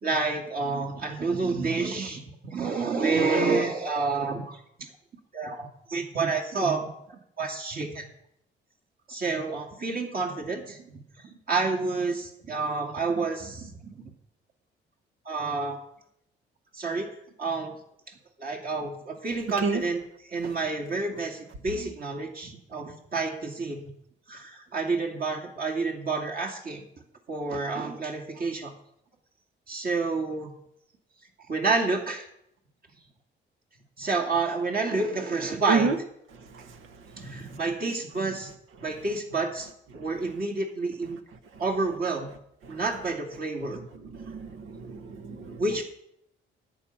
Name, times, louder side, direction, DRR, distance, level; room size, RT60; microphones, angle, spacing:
voice 1, 0.0-4.6 5.3-8.1 9.1-10.8 11.5-13.7 14.0-14.1 15.2-15.8 16.7-17.1 17.4-17.7 18.1-23.9 24.3-26.8 27.3-28.7 29.7-30.5 31.5-32.3 34.0-35.9 37.2-38.5 38.8-41.2 41.6-42.3 42.7-43.8 45.6-45.8, right 3 dB, 45° right, 1 dB, 2.5 m, -29 dB
voice 2, 44.1-45.6, right 4 dB, 85° right, 9 dB, 1.4 m, -28 dB
13.5 x 9.3 x 5.7 m, 0.75 s
cardioid pair, 90°, 20 cm